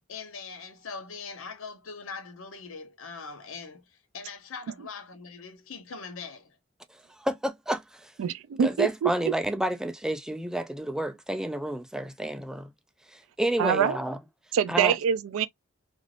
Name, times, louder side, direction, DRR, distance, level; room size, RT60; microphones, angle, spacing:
voice 1, 0.1-6.6, left 5 dB, 75° left, 0.8 m, -41 dB
voice 2, 7.2-8.1 8.6-12.7 13.1-14.2 14.7-15.0, right 1 dB, 5° right, 0.3 m, -30 dB
voice 3, 8.2-9.3 13.6-14.0 14.5-15.5, right 8 dB, 80° right, 0.3 m, -25 dB
3.3 x 2.5 x 2.4 m
head